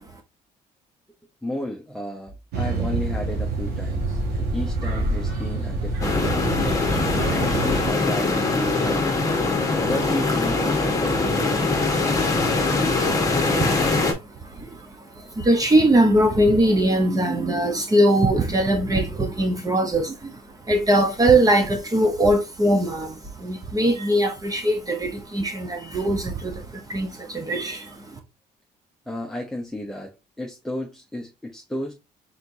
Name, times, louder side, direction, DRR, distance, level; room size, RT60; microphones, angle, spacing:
voice 1, 1.4-6.7 7.3-9.4 9.9-11.7 29.1-31.9, left 1 dB, 5° left, 0.8 m, -33 dB
sound 1, 2.5-7.9, right 2 dB, 75° right, 1.6 m, -26 dB
sound 2, 6.0-14.1, left 3 dB, 20° left, 1.2 m, -22 dB
voice 2, 13.4-14.1 14.4-28.2, right 1 dB, 20° right, 0.9 m, -21 dB
4.3 x 3.9 x 2.7 m
cardioid pair, 110°, 17 cm